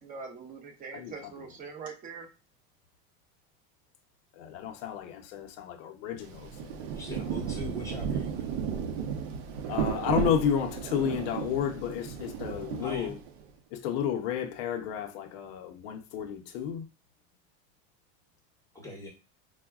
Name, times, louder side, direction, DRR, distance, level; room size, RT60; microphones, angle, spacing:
voice 1, 0.0-2.3, right 5 dB, 25° right, 0.8 m, -42 dB
voice 2, 4.3-6.9 9.7-13.2 13.7-16.8, left 9 dB, 75° left, 0.6 m, -32 dB
Rain, 6.2-13.4, right 7 dB, 80° right, 0.7 m, -34 dB
voice 3, 6.9-8.5 12.8-13.1 18.7-19.1, equal, 10° left, 0.7 m, -41 dB
4.7 x 2.2 x 2.3 m
cardioid pair, 145°, 31 cm